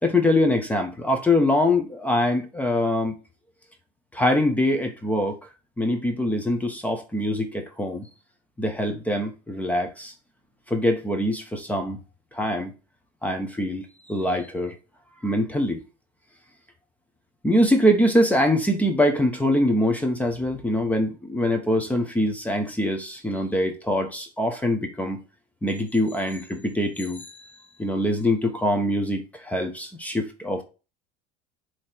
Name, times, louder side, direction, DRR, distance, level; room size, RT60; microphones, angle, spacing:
voice 1, 0.0-3.2 4.1-5.4 5.8-8.1 8.6-10.1 10.7-12.0 12.3-12.7 13.2-14.7 15.2-15.8 17.4-25.2 25.6-27.5 27.8-30.6, left 1 dB, 5° left, 1.1 m, -23 dB
8.4 x 3.3 x 4.5 m
supercardioid pair, 130°, 20 cm